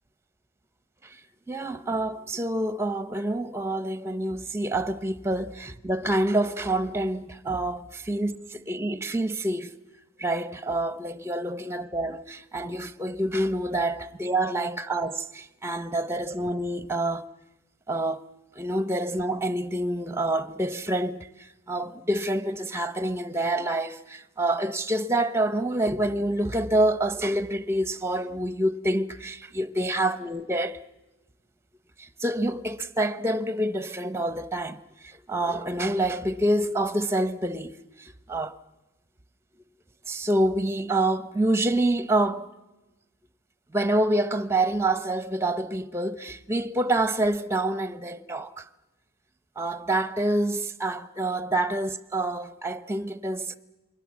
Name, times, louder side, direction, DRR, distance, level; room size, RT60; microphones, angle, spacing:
voice 1, 1.5-9.7 10.2-17.3 17.9-18.2 18.6-30.8 32.0-38.6 40.1-42.5 43.7-48.6 49.6-53.6, right 1 dB, 10° right, 0.8 m, -27 dB
28.0 x 22.0 x 7.4 m
head